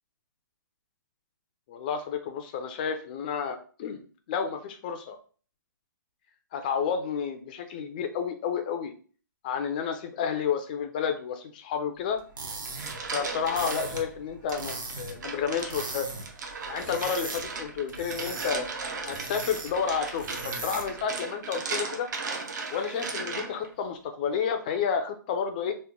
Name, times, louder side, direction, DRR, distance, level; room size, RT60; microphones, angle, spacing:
voice 1, 1.7-4.0 4.3-5.2 6.5-8.9 9.4-12.2 13.1-16.1 16.7-18.7 19.1-22.1 22.7-25.7, left 7 dB, 25° left, 7 dB, 0.3 m, -30 dB
sound 1, 12.2-21.1, right 3 dB, 85° right, 1.0 m, -40 dB
sound 2, 12.5-14.0 14.5-23.7, right 4 dB, 60° right, 0.7 m, -37 dB
3.0 x 2.1 x 3.5 m, 0.40 s
hypercardioid pair, 155°, 11 cm